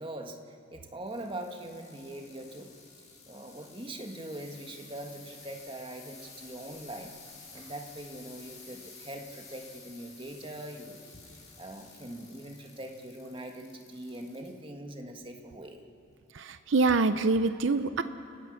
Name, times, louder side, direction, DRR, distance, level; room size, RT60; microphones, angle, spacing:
voice 1, 0.0-2.7 3.3-7.1 7.5-11.1 11.6-15.8, right 1 dB, 25° right, 3 dB, 1.6 m, -42 dB
sound 1, 1.0-14.5 15.0-15.5 16.1-16.2, left 4 dB, 35° left, 7.2 m, -52 dB
voice 2, 16.4-18.0, right 3 dB, 70° right, 11 dB, 0.6 m, -25 dB
29.5 x 16.0 x 6.5 m, 2.7 s
head